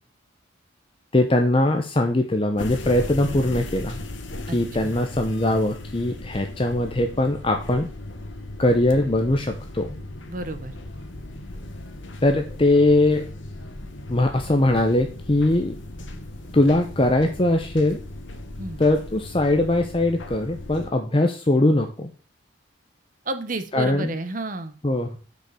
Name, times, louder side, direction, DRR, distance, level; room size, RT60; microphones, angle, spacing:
voice 1, 1.1-4.0 4.5-7.9 8.6-9.9 12.2-13.2 14.1-15.7 16.5-18.0 18.8-22.1 23.7-24.1 24.8-25.2, left 1 dB, 25° left, 4 dB, 0.7 m, -21 dB
sound 1, 2.6-20.9, left 1 dB, 70° left, 1.3 m, -37 dB
voice 2, 10.3-10.7 18.6-18.8 23.2-24.8, right 2 dB, 40° right, 9 dB, 0.9 m, -31 dB
6.4 x 5.3 x 6.8 m, 0.37 s
head